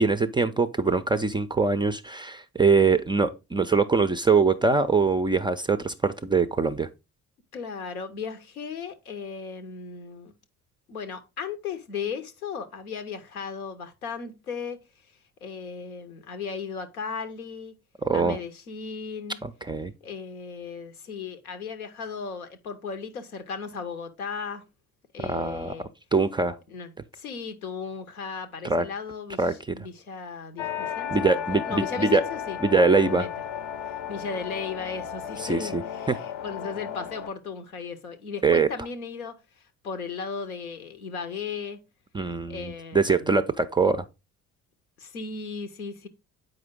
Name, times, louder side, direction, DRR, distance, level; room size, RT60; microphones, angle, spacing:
voice 1, 0.0-6.9 18.0-18.4 19.4-19.9 25.2-25.7 26.1-26.6 28.6-28.9 29.4-29.5 31.1-32.2 32.6-33.3 35.4-35.8 36.1-36.2 38.4-38.7 42.1-44.0, right 4 dB, 10° right, 0.3 m, -23 dB
voice 2, 7.5-10.3 10.9-14.8 15.4-17.7 18.1-19.4 20.0-24.6 25.1-25.9 26.7-32.6 32.9-33.3 34.1-39.4 39.8-41.8 42.5-43.4 45.0-46.1, left 5 dB, 80° left, 0.8 m, -36 dB
sound 1, 30.6-37.3, left 9 dB, 50° left, 0.6 m, -34 dB
7.8 x 5.0 x 3.6 m
figure-of-eight pair, 45°, 43 cm